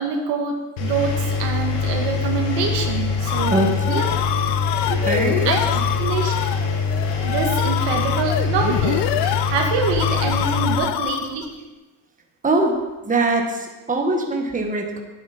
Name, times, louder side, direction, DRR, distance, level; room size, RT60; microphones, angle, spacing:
voice 1, 0.0-3.7 3.9-4.1 4.9-5.1 5.5-5.6 6.0-6.5 7.2-11.5, right 5 dB, 80° right, 2 dB, 1.9 m, -25 dB
Engine, 0.8-10.8, left 4 dB, 85° left, 1.8 m, -24 dB
sound 1, 3.2-11.5, left 13 dB, 70° left, 0.6 m, -26 dB
voice 2, 3.5-4.0 5.0-5.5 12.4-12.8 13.0-15.0, right 2 dB, 20° right, 2 dB, 1.5 m, -22 dB
11.0 x 8.9 x 4.3 m, 1.2 s
cardioid pair, 120°, 42 cm